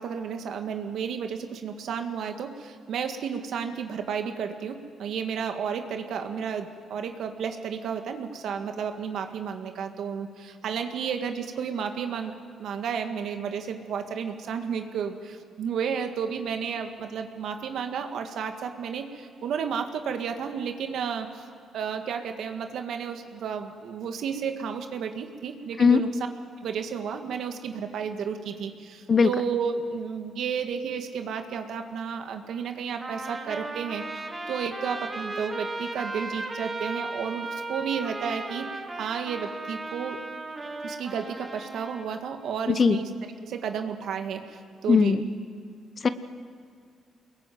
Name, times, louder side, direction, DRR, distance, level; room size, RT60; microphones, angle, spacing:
voice 1, 0.0-12.3 12.6-21.5 21.7-26.3 26.6-34.0 34.5-38.7 38.9-40.2 40.8-43.1 43.4-45.2, right 7 dB, 70° right, 6 dB, 1.8 m, -32 dB
Trumpet, 33.0-42.1, right 2 dB, 20° right, 3.0 m, -36 dB
voice 2, 42.7-43.0 44.9-45.2 46.0-46.1, left 5 dB, 40° left, 12 dB, 0.9 m, -19 dB
24.0 x 21.5 x 9.3 m, 2.2 s
cardioid pair, 90°, 0 cm